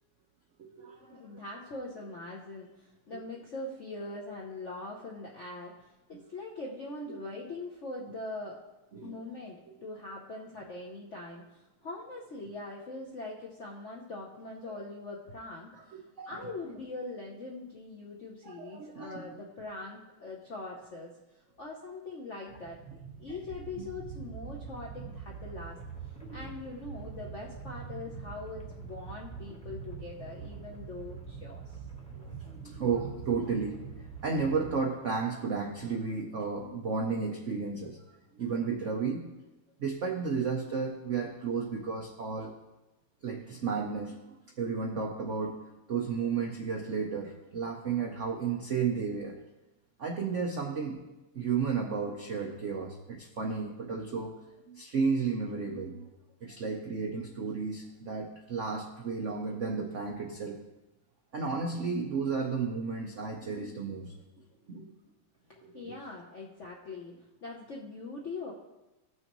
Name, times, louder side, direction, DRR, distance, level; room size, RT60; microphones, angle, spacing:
voice 1, 0.6-1.4 3.1-3.2 6.1-6.2 7.1-7.2 8.9-9.2 14.7-14.8 15.8-16.4 18.4-19.2 23.3-23.4 26.3-26.4 32.1-33.8 34.2-38.0 38.3-39.2 39.8-42.5 43.2-49.4 50.0-51.0 51.3-54.3 54.7-56.1 56.4-60.6 61.3-64.2 64.7-64.9 65.6-65.8, right 5 dB, 80° right, 1 dB, 0.6 m, -33 dB
voice 2, 1.1-8.6 9.0-21.1 21.6-25.8 26.3-31.8 65.5-67.1 67.4-68.5, left 2 dB, 65° left, -2 dB, 0.7 m, -42 dB
sound 1, 22.5-34.8, right 6 dB, 10° left, 0.4 m, -44 dB
15.0 x 6.2 x 3.0 m, 1.0 s
omnidirectional pair, 2.4 m